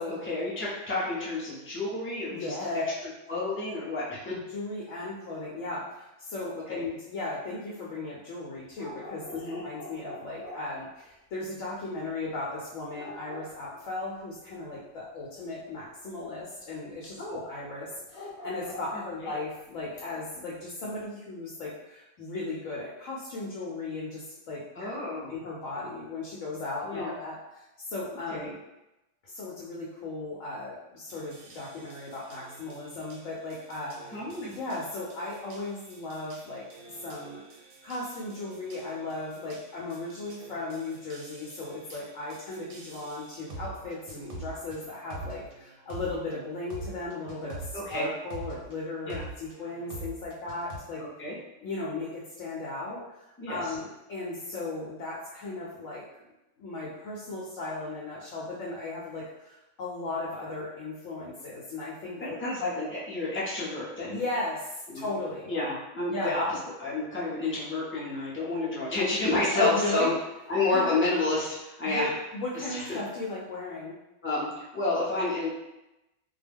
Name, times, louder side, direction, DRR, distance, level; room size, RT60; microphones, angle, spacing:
voice 1, 0.1-2.5 3.3-4.3 6.7-6.8 9.3-9.6 17.2-17.4 18.9-19.3 24.8-25.4 26.8-27.1 28.3-28.5 34.1-34.6 47.7-48.1 49.0-49.2 51.0-51.4 53.4-53.6 62.2-64.2 64.9-65.1 65.5-66.4 66.8-70.1 70.5-72.1 72.5-73.0 74.2-75.5, left 2 dB, 15° left, -7 dB, 0.5 m, -30 dB
voice 2, 2.3-2.9 4.3-24.9 25.3-27.4 27.8-28.6 29.2-36.7 37.0-37.4 37.8-51.0 51.6-56.0 56.6-62.4 64.1-65.5 66.1-66.3 69.6-70.2 70.7-71.0 71.8-73.9, left 2 dB, 90° left, -5 dB, 1.0 m, -36 dB
sound 1, 8.7-10.7 13.0-14.2 17.8-19.5 19.7-19.8, left 1 dB, 45° left, 0.9 m, -44 dB
sound 2, 31.1-48.7 49.1-50.8, right 2 dB, 60° right, 0.7 m, -46 dB
2.3 x 2.1 x 3.4 m, 0.95 s
omnidirectional pair, 1.3 m